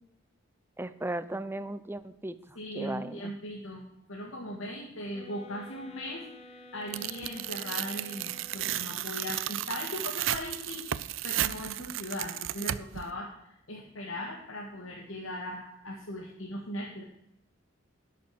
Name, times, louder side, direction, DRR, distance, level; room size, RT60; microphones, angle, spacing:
voice 1, 0.8-3.3, right 1 dB, 10° right, 13 dB, 0.6 m, -37 dB
voice 2, 2.6-17.0, left 1 dB, 85° left, 0 dB, 1.8 m, -39 dB
sound 1, 5.1-9.0, left 1 dB, 30° left, 1.0 m, -52 dB
Tearing, 6.9-13.1, right 13 dB, 70° right, 0.5 m, -34 dB
12.5 x 6.9 x 6.1 m, 0.81 s
head